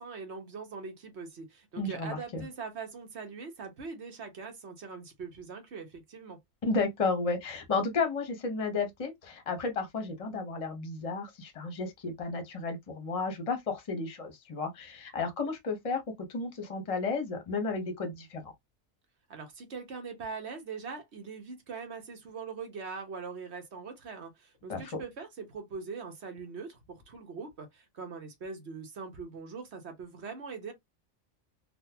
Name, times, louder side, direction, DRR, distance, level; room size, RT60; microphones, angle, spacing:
voice 1, 0.0-6.4 19.3-30.7, right 5 dB, 55° right, 1.2 m, -42 dB
voice 2, 1.8-2.4 6.6-18.5 24.7-25.0, left 4 dB, 30° left, 0.8 m, -33 dB
3.9 x 2.3 x 2.7 m
omnidirectional pair, 1.4 m